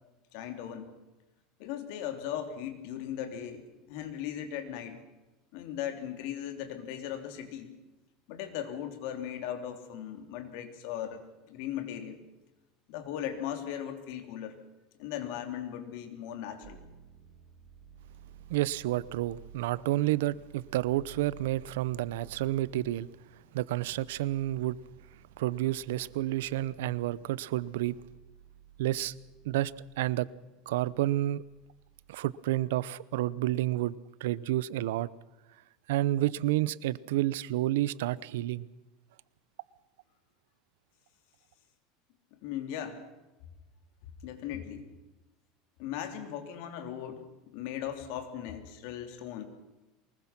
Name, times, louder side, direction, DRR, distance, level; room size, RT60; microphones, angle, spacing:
voice 1, 0.3-0.9 1.6-5.0 5.5-7.7 8.3-12.2 12.9-14.5 15.0-16.8 42.3-43.0 44.2-44.9 45.8-49.4, left 10 dB, 65° left, 3.3 m, -38 dB
sound 1, 16.6-32.2, right 9 dB, 40° right, 2.5 m, -55 dB
voice 2, 18.5-23.1 23.5-24.8 25.4-28.0 28.8-29.1 29.4-29.7 30.0-30.3 30.7-31.4 32.1-35.1 35.9-38.7, right 15 dB, 90° right, 0.7 m, -30 dB
23.5 x 21.0 x 6.0 m
supercardioid pair, 140°, 0 cm